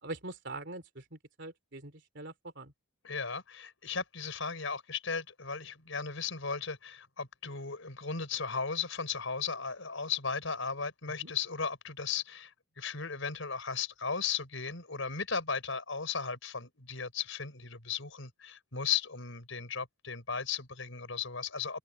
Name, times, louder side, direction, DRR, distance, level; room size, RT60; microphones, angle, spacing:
voice 1, 0.0-2.7 11.2-11.3, right 2 dB, 55° right, 3.4 m, -43 dB
voice 2, 3.0-21.8, left 6 dB, 70° left, 5.0 m, -36 dB
head